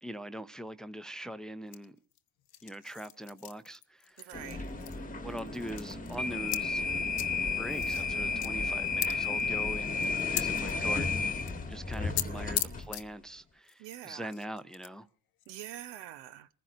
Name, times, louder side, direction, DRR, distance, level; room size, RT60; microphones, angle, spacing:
voice 1, 0.0-2.0 2.6-4.4 5.2-6.8 7.6-11.4 11.7-15.1, right 1 dB, ahead, 0.7 m, -42 dB
sound 1, 1.7-5.0 5.3-6.6 7.1-7.3 7.6-11.6 11.9-12.2 12.6-13.0 13.6-14.9 15.4-15.6, left 13 dB, 55° left, 0.9 m, -39 dB
voice 2, 4.2-4.6 12.0-12.8 13.8-14.3 15.5-16.5, right 12 dB, 70° right, 1.0 m, -45 dB
sound 2, 4.3-12.9, left 4 dB, 20° left, 1.3 m, -33 dB
30.0 x 15.0 x 2.5 m
hypercardioid pair, 65°, 44 cm